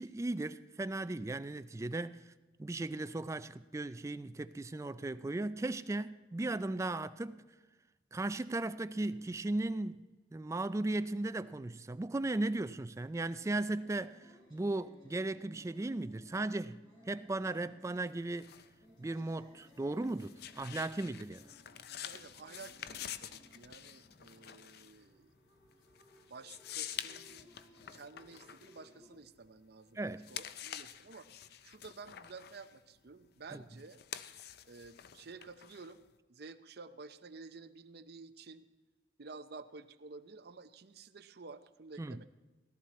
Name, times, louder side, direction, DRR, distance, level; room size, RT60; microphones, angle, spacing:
voice 1, 0.0-2.3 2.6-7.4 8.1-18.5 19.0-21.4 29.9-30.3 33.5-33.6 42.0-42.2, right 2 dB, 15° right, 0.3 m, -37 dB
sound 1, 12.9-29.1, equal, 25° left, 4.9 m, -63 dB
sound 2, 17.9-29.7 30.1-36.2, left 10 dB, 55° left, 0.5 m, -48 dB
voice 2, 22.0-25.3 26.3-27.5 27.9-30.0 30.3-31.3 31.6-34.0 34.7-36.0 36.3-38.7 39.2-42.2, right 4 dB, 55° right, 0.7 m, -52 dB
17.0 x 12.5 x 4.2 m
head